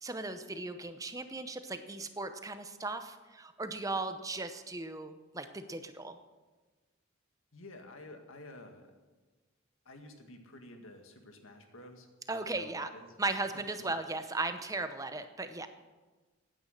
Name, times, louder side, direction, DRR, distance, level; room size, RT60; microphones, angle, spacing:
voice 1, 0.0-6.2 12.3-12.9 13.2-15.7, right 2 dB, 15° right, 9 dB, 0.7 m, -37 dB
voice 2, 7.5-9.0 9.9-12.1 12.5-13.1 13.5-14.0, left 1 dB, 80° left, 5 dB, 1.9 m, -51 dB
16.0 x 9.6 x 6.6 m, 1.3 s
head